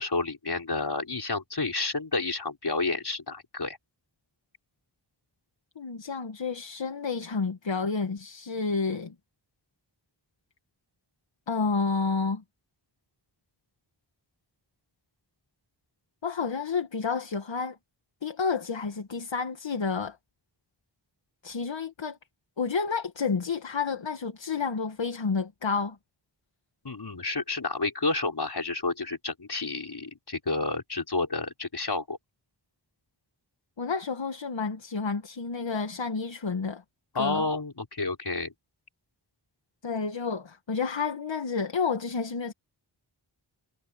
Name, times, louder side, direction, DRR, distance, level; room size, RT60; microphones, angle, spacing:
voice 1, 0.0-3.8 26.8-32.2 37.1-38.5, left 3 dB, 55° left, 5.0 m, -30 dB
voice 2, 5.8-9.2 11.5-12.4 16.2-17.8 18.2-20.2 21.4-22.2 22.6-26.0 33.8-36.8 37.1-37.5 39.8-42.5, left 5 dB, 70° left, 1.6 m, -30 dB
wide cardioid pair, 55°, 46 cm